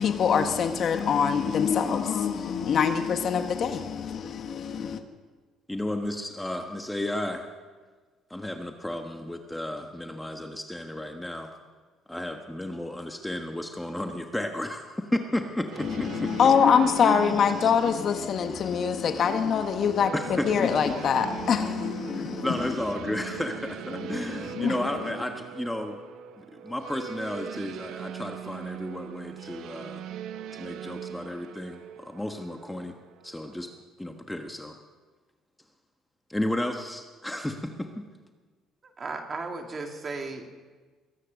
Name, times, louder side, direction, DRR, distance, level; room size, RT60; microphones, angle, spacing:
voice 1, 0.0-5.0 15.8-22.7 23.9-25.1, left 7 dB, 50° left, 1.3 m, -25 dB
voice 2, 5.7-7.5 8.3-11.5 12.1-16.3 17.0-17.3 17.6-17.7 20.1-20.5 22.1-26.0 26.4-30.0 30.5-32.9 33.2-33.7 34.0-34.8 36.3-38.1, left 1 dB, 5° left, 1.3 m, -33 dB
sound 1, 15.7-33.8, right 9 dB, 75° right, 0.8 m, -41 dB
voice 3, 38.8-40.5, right 3 dB, 35° right, 2.4 m, -35 dB
22.0 x 9.8 x 6.5 m
cardioid pair, 95°, 0 cm